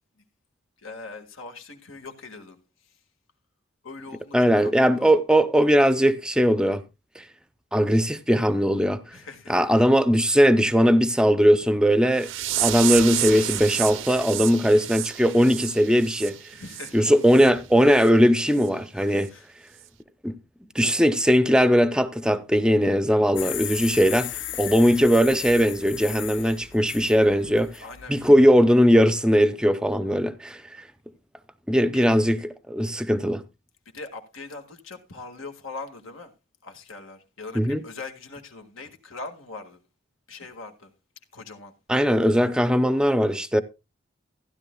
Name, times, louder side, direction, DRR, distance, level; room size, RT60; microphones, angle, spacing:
voice 1, 0.8-3.0 3.8-5.2 9.1-9.7 10.2-10.4 16.5-17.2 18.9-19.5 27.8-28.2 31.9-32.1 33.9-36.3 36.6-39.8 40.3-40.9 41.3-41.7, left 3 dB, 80° left, 1.9 m, -41 dB
voice 2, 4.3-6.8 7.2-7.3 7.7-9.0 9.5-12.3 12.6-16.4 16.9-19.3 20.2-20.4 20.7-27.8 28.1-30.6 31.7-33.4 37.6-37.8 41.9-43.6, equal, 5° right, 0.6 m, -19 dB
sound 1, 12.2-16.9 17.3-17.5 17.9-18.1 18.6-18.7 19.2-19.3, right 13 dB, 75° right, 0.7 m, -30 dB
sound 2, 23.4-28.4, left 12 dB, 65° left, 0.5 m, -36 dB
15.5 x 11.0 x 2.3 m
head